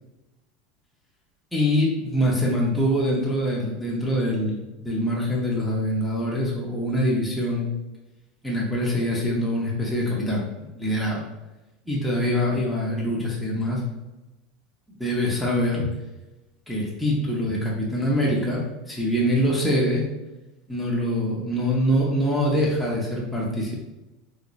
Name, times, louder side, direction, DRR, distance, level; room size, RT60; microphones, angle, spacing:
voice 1, 1.5-7.7 8.4-11.2 11.9-13.8 15.0-15.9 16.7-20.0 20.7-23.8, equal, ahead, -5 dB, 0.7 m, -24 dB
3.3 x 2.5 x 3.1 m, 1.0 s
supercardioid pair, 160°, 0 cm